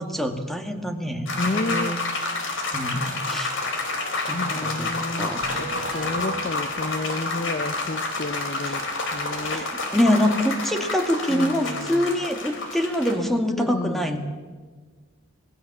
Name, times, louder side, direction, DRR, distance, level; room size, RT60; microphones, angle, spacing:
voice 1, 0.0-2.0 2.7-3.5 4.3-4.9 5.2-5.5 8.6-8.8 9.5-9.7 9.9-14.2, equal, ahead, 5 dB, 2.1 m, -25 dB
Applause longer, 1.3-13.2, left 2 dB, 65° left, 3.7 m, -29 dB
voice 2, 1.4-2.0 4.3-8.8 9.1-9.7 11.3-12.1 13.4-14.1, left 2 dB, 40° left, 11 dB, 0.7 m, -31 dB
sound 1, 5.4-7.4, right 3 dB, 85° right, 2.1 m, -38 dB
26.5 x 18.5 x 7.3 m, 1.4 s
head